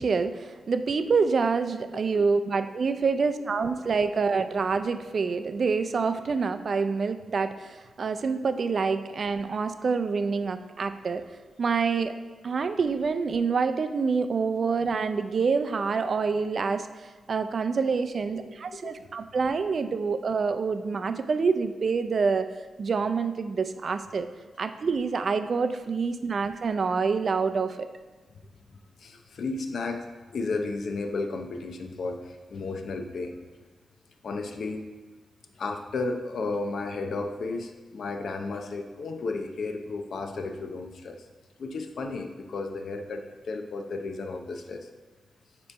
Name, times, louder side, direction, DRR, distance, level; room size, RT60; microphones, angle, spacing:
voice 1, 0.0-11.2 11.6-12.1 12.4-16.9 17.3-22.5 22.8-24.3 24.6-27.9, right 5 dB, 60° right, 9 dB, 0.4 m, -27 dB
voice 2, 28.7-30.0 30.3-33.4 34.2-34.8 35.6-41.3 41.6-44.9, left 3 dB, 70° left, 5 dB, 0.6 m, -33 dB
8.4 x 3.0 x 4.6 m, 1.3 s
cardioid pair, 60°, 0 cm